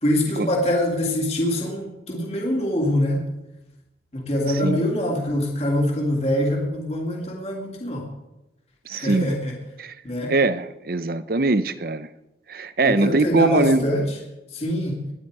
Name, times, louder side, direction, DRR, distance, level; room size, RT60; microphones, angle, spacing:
voice 1, 0.0-3.2 4.1-8.1 8.9-9.6 10.0-10.3 12.8-14.1 14.5-15.0, left 1 dB, 35° left, 2.5 m, -24 dB
voice 2, 4.5-4.8 8.9-9.3 9.8-9.9 10.3-12.1 12.5-13.9, right 3 dB, 50° right, 0.7 m, -22 dB
19.0 x 11.5 x 4.8 m
head